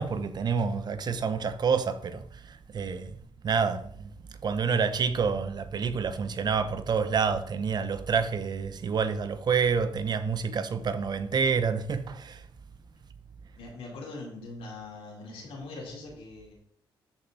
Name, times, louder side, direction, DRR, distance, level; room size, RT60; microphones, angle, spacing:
voice 1, 0.0-3.2 3.4-4.1 4.4-12.4, right 6 dB, 50° right, 1.0 m, -28 dB
voice 2, 13.6-16.5, left 2 dB, 90° left, 4.4 m, -42 dB
13.0 x 5.5 x 4.3 m
cardioid pair, 105°, 9 cm